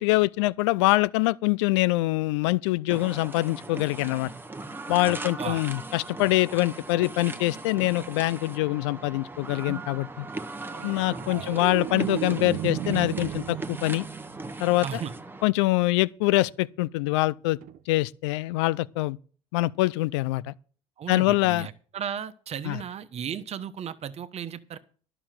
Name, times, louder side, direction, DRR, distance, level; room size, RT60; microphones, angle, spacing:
voice 1, 0.0-4.3 4.9-10.3 10.8-14.1 14.6-15.0 15.4-17.6 17.9-19.2 19.5-20.5 21.1-21.7 22.6-22.8, left 19 dB, 90° left, 0.4 m, -24 dB
sound 1, 2.9-15.5, right 2 dB, 15° right, 1.1 m, -39 dB
voice 2, 5.1-5.6 11.4-11.5 14.8-15.1 21.0-24.8, right 8 dB, 50° right, 1.1 m, -35 dB
sound 2, 10.7-15.2 17.6-17.8, right 12 dB, 65° right, 0.8 m, -35 dB
11.5 x 6.1 x 7.6 m
supercardioid pair, 80°, 14 cm